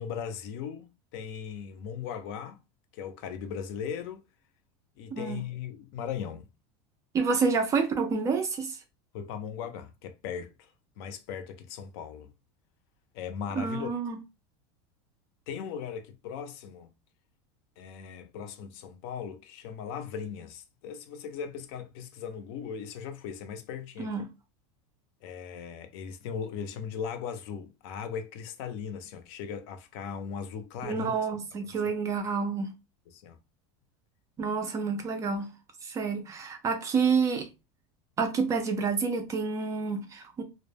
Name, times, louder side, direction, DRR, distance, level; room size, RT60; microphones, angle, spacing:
voice 1, 0.0-2.6 2.9-4.2 5.0-6.5 9.1-10.7 11.0-12.3 13.1-13.9 15.5-16.9 17.8-24.1 25.2-31.1 33.1-33.4, left 7 dB, 55° left, 0.5 m, -38 dB
voice 2, 5.1-5.4 7.1-8.8 13.6-14.2 24.0-24.3 30.8-32.7 34.4-35.5 35.8-37.5 38.2-40.4, right 5 dB, 20° right, 0.3 m, -28 dB
2.1 x 2.0 x 3.2 m
supercardioid pair, 155°, 15 cm